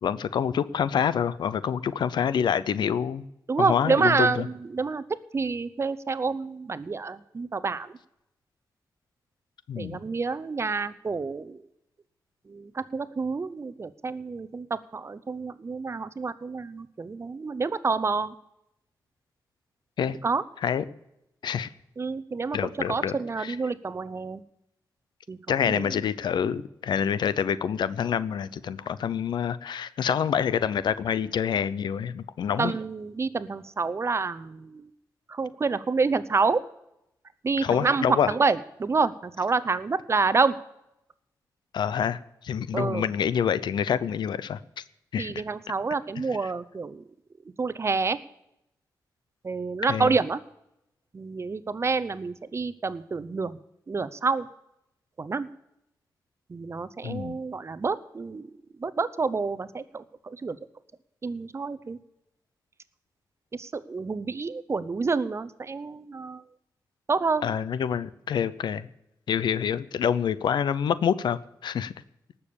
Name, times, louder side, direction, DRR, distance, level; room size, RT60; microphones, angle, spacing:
voice 1, 0.0-3.2 3.6-4.5 9.7-10.0 20.0-20.2 20.6-20.8 21.4-21.7 22.5-23.6 25.5-32.7 37.6-38.3 41.7-42.2 42.4-44.6 45.1-45.3 46.4-46.5 49.9-50.1 57.0-57.4 67.4-68.9 69.3-71.9, left 8 dB, 85° left, 16 dB, 0.7 m, -27 dB
voice 2, 3.5-5.0 5.3-7.9 9.8-11.6 12.5-18.3 20.2-20.4 22.0-22.6 22.9-24.4 25.3-25.4 25.6-25.9 32.6-34.9 35.3-36.6 37.4-40.5 42.7-43.1 45.2-47.0 47.6-48.2 49.4-50.4 51.1-53.6 53.9-54.5 55.2-55.5 56.5-58.5 58.8-60.6 61.2-62.0 63.6-66.4 67.1-67.5, right 4 dB, 35° right, 15 dB, 0.7 m, -28 dB
18.5 x 7.0 x 7.0 m, 0.84 s
wide cardioid pair, 95°, 7 cm